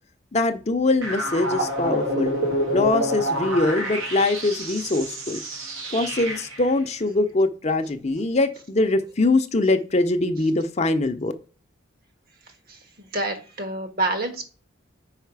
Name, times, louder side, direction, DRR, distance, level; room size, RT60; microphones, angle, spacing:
voice 1, 0.3-2.3 2.7-5.4 5.9-11.3, left 2 dB, 35° left, 7 dB, 0.6 m, -22 dB
sound 1, 1.0-6.7, equal, 85° right, 2.0 m, -28 dB
voice 2, 12.7-14.4, right 2 dB, 50° right, 6 dB, 1.4 m, -28 dB
5.7 x 4.8 x 4.7 m, 0.37 s
head